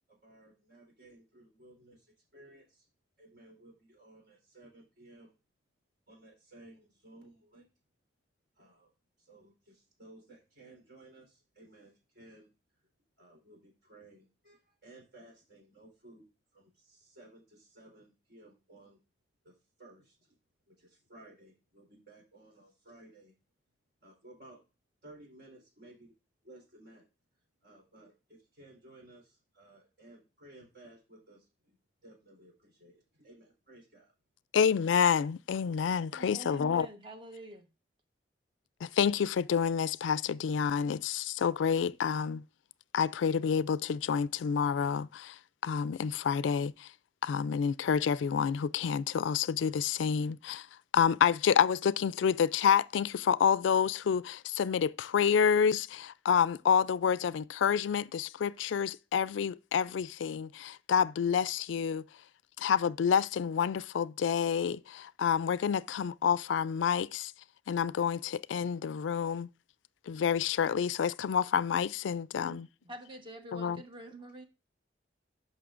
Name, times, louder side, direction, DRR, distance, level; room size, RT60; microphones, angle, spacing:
voice 1, 0.1-2.9 3.2-5.3 6.1-7.7 8.6-8.9 9.2-12.5 13.2-19.0 19.4-19.5 19.8-20.3 20.7-23.3 24.0-24.6 25.0-26.1 26.4-27.0 27.6-31.8 32.0-34.1, right 2 dB, 60° right, 3.8 m, -57 dB
voice 2, 34.5-36.9 38.8-42.4 42.9-45.4 45.6-46.9 47.2-50.7 50.9-62.0 62.6-67.3 67.7-69.5 70.1-72.7 73.5-73.8, left 7 dB, 85° left, 0.3 m, -28 dB
voice 3, 36.1-37.7 72.5-74.4, right 1 dB, 30° right, 1.2 m, -47 dB
12.5 x 5.5 x 2.5 m
head